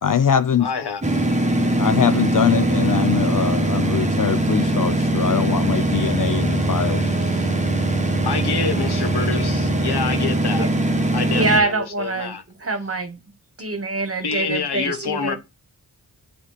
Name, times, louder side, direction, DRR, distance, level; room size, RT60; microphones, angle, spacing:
voice 1, 0.0-0.7 1.6-7.0, left 8 dB, 50° left, 0.6 m, -22 dB
voice 2, 0.6-1.0 8.2-10.7 11.1-12.4 14.2-15.4, left 5 dB, 70° left, 1.1 m, -27 dB
sound 1, 1.0-11.6, right 2 dB, 15° right, 1.2 m, -21 dB
voice 3, 11.3-13.2 13.6-15.4, right 3 dB, 35° right, 1.4 m, -24 dB
7.9 x 3.4 x 4.1 m
cardioid pair, 50°, 40 cm